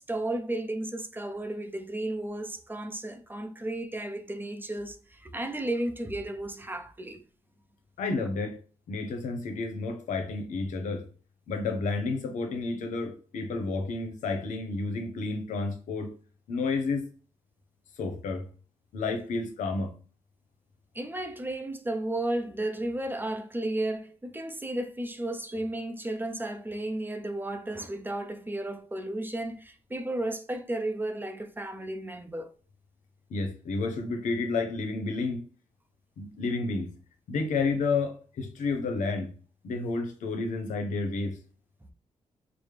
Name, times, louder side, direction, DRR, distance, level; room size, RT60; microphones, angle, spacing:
voice 1, 0.0-7.2 20.9-32.5, right 1 dB, 15° right, 0.5 m, -33 dB
voice 2, 8.0-8.6 8.9-11.1 11.5-16.1 16.5-17.0 18.0-18.5 18.9-19.9 33.3-35.4 36.2-36.9 37.3-39.3 39.6-41.4, left 3 dB, 90° left, 0.7 m, -30 dB
4.8 x 2.0 x 3.3 m
cardioid pair, 80°, 12 cm